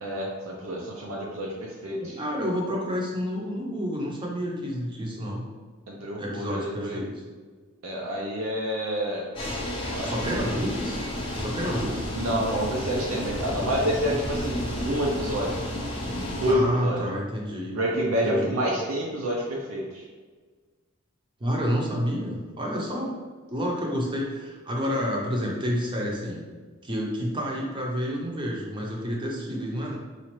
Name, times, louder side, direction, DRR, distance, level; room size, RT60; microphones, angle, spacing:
voice 1, 0.0-2.2 5.9-7.0 7.8-9.3 9.9-10.5 12.1-15.5 16.0-17.0 17.7-20.0, equal, 75° right, -2 dB, 0.5 m, -28 dB
voice 2, 2.0-5.4 6.2-7.1 10.0-11.0 11.4-12.0 16.5-17.8 18.2-18.6 21.4-23.1 23.5-26.4 26.8-30.0, equal, 25° right, -2 dB, 0.6 m, -29 dB
sound 1, 9.4-16.5, left 1 dB, 25° left, 0.6 m, -31 dB
4.1 x 2.4 x 3.0 m, 1.4 s
head